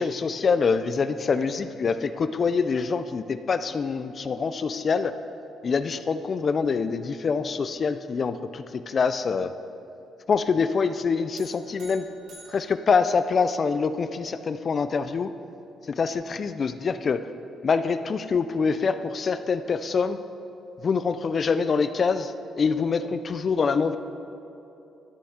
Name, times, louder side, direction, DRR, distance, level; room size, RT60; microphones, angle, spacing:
voice 1, 0.0-5.1 5.6-9.5 10.3-12.0 12.5-15.3 15.9-17.2 17.6-20.2 20.8-24.0, left 5 dB, 45° left, 11 dB, 0.3 m, -25 dB
sound 1, 11.4-13.8, right 2 dB, 80° right, 2.0 m, -51 dB
12.5 x 6.9 x 3.6 m, 2.8 s
cardioid pair, 90°, 0 cm